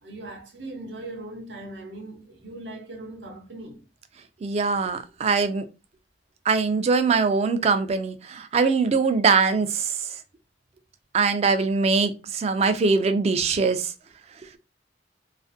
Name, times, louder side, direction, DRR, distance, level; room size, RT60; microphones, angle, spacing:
voice 1, 0.0-3.8, right 2 dB, 70° right, 0.7 m, -39 dB
voice 2, 4.4-5.6 6.5-10.1 11.1-13.9, right 4 dB, 35° right, 0.3 m, -22 dB
2.4 x 2.4 x 2.5 m
head